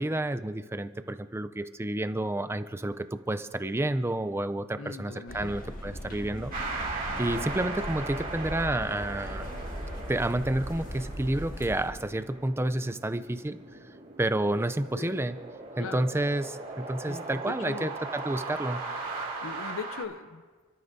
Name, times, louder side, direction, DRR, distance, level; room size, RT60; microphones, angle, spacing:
voice 1, 0.0-6.5 7.2-9.5 10.1-13.6 14.2-15.4 15.8-18.8, right 1 dB, 10° right, 11 dB, 0.5 m, -30 dB
voice 2, 4.8-5.5 7.2-7.5 14.9-15.2 15.8-16.1 17.1-18.0 19.4-20.4, left 4 dB, 70° left, 12 dB, 0.7 m, -40 dB
sound 1, 5.3-11.9, equal, 40° left, 1.7 m, -39 dB
sound 2, 6.5-20.0, right 3 dB, 45° right, 2.9 m, -39 dB
30.0 x 13.5 x 2.7 m, 1.4 s
head